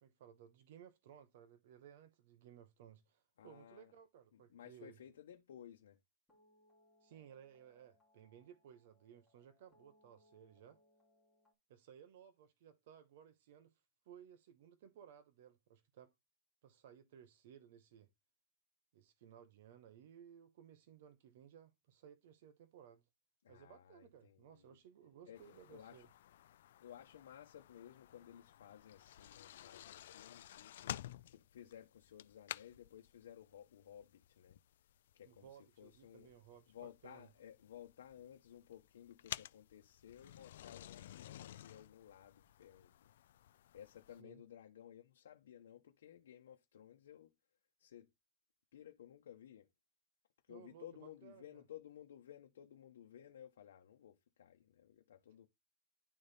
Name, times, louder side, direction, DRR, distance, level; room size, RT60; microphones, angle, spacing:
voice 1, 0.0-5.0 7.0-10.8 11.7-16.1 16.6-18.1 18.9-23.0 23.5-26.1 35.2-37.3 44.2-44.4 50.5-51.6, right 9 dB, 55° right, 0.9 m, -60 dB
voice 2, 3.4-3.9 4.3-6.0 23.4-24.8 25.3-26.1 26.8-30.9 31.3-34.6 35.1-35.5 35.8-36.3 36.7-43.4 43.7-47.3 47.8-48.1 48.7-49.7 50.5-55.5, left 10 dB, 90° left, 0.9 m, -57 dB
sound 1, 6.3-11.5, left 1 dB, 5° left, 2.4 m, -73 dB
sound 2, 25.4-44.2, left 12 dB, 65° left, 0.3 m, -53 dB
11.0 x 4.1 x 3.4 m
supercardioid pair, 165°, 0 cm